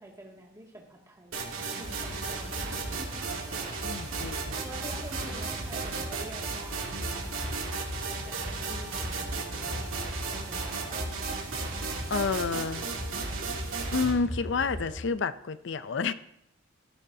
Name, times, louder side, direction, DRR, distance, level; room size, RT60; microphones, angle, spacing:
voice 1, 0.0-1.4 1.8-3.2 4.1-6.9 8.3-11.2, right 1 dB, 15° right, -2 dB, 2.2 m, -47 dB
sound 1, 1.3-14.1, right 4 dB, 75° right, 2.7 m, -35 dB
sound 2, 1.8-15.1, equal, 30° left, 4.5 m, -39 dB
voice 2, 3.8-4.5 12.1-12.8 13.9-16.1, left 4 dB, 60° left, 14 dB, 0.5 m, -29 dB
15.5 x 12.5 x 2.8 m, 0.79 s
head